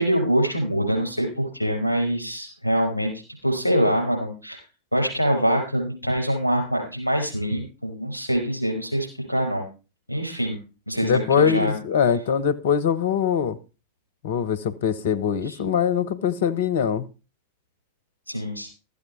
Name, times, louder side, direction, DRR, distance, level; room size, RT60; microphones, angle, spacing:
voice 1, 0.0-3.1 3.4-4.6 4.9-9.7 10.1-10.6 10.9-11.7 18.3-18.7, equal, 90° right, 5.3 m, -24 dB
voice 2, 11.0-13.6 14.2-17.0, left 7 dB, 60° left, 0.9 m, -22 dB
13.5 x 8.5 x 4.5 m
figure-of-eight pair, 90°, 0 cm